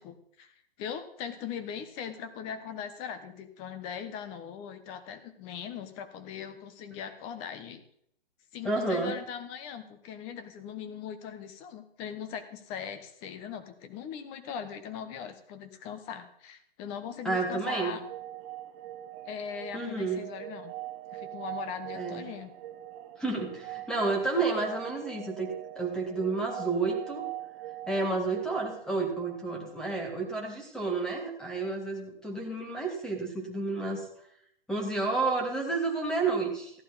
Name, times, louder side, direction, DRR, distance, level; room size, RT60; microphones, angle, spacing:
voice 1, 0.0-7.8 8.5-18.0 19.3-20.7 21.1-22.5, left 8 dB, 20° left, 10 dB, 1.0 m, -40 dB
voice 2, 8.6-9.1 17.2-18.0 19.7-20.2 21.9-22.2 23.2-27.3 27.9-34.1 34.7-36.8, right 3 dB, ahead, 0 dB, 1.8 m, -30 dB
sound 1, 17.2-30.0, right 14 dB, 20° right, 0.9 m, -42 dB
14.5 x 11.0 x 4.1 m, 0.71 s
hypercardioid pair, 155°, 29 cm